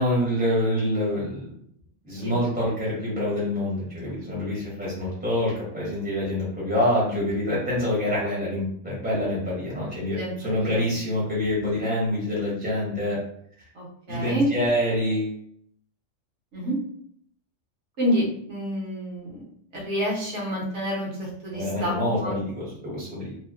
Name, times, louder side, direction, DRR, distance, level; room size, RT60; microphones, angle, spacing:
voice 1, 0.0-1.5 2.0-10.2 10.4-13.2 14.1-15.3 21.5-23.4, left 1 dB, 10° right, -7 dB, 0.6 m, -26 dB
voice 2, 10.1-10.8 13.7-14.5 16.5-16.8 18.0-19.4 19.7-21.9 22.2-22.4, equal, 70° right, -4 dB, 1.1 m, -28 dB
2.7 x 2.0 x 2.4 m, 0.67 s
omnidirectional pair, 1.3 m